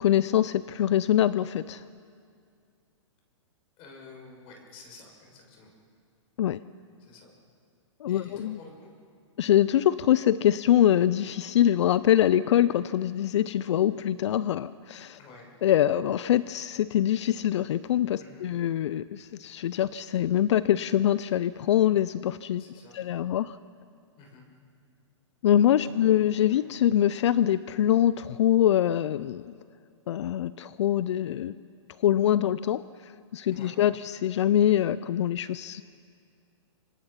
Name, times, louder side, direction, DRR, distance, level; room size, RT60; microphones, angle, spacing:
voice 1, 0.0-1.8 6.4-6.6 8.0-8.6 9.4-15.2 15.6-22.6 22.9-23.6 25.4-29.4 30.1-31.6 32.0-35.8, left 11 dB, 65° left, 17 dB, 0.6 m, -24 dB
voice 2, 3.8-5.7 7.0-7.3 8.0-8.9 15.1-15.5 18.2-18.5 22.6-23.0 24.2-24.4 25.7-26.2 26.5-26.6 33.5-33.7, left 3 dB, 35° left, 0 dB, 6.5 m, -50 dB
27.0 x 25.5 x 5.8 m, 2.3 s
hypercardioid pair, 135°, 16 cm